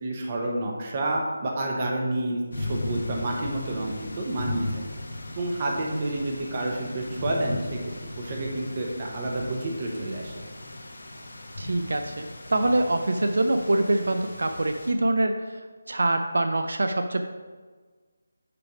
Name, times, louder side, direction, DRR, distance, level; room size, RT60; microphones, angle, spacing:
voice 1, 0.0-4.7 5.4-7.8 8.2-10.3, right 1 dB, 25° right, -1 dB, 0.9 m, -29 dB
sound 1, 2.5-14.9, left 2 dB, 80° left, 1.4 m, -37 dB
voice 2, 11.6-15.6 15.9-17.2, right 2 dB, 70° right, 6 dB, 0.5 m, -25 dB
6.7 x 3.4 x 6.0 m, 1.4 s
figure-of-eight pair, 175°, 0 cm